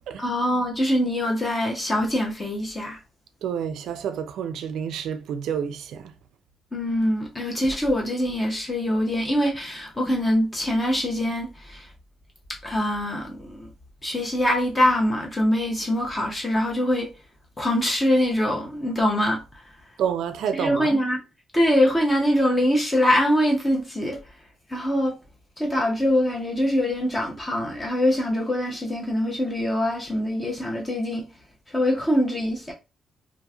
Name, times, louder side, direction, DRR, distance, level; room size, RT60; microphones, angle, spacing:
voice 1, 0.2-3.0 6.7-11.8 12.6-13.7 14.0-17.1 17.6-19.4 20.5-21.2 21.5-24.2 24.7-25.2 25.6-31.3 31.7-32.7, left 1 dB, 15° left, 0.6 m, -23 dB
voice 2, 3.4-6.1 20.0-20.9, right 8 dB, 80° right, 0.3 m, -29 dB
2.9 x 2.4 x 2.3 m
cardioid pair, 170°, 0 cm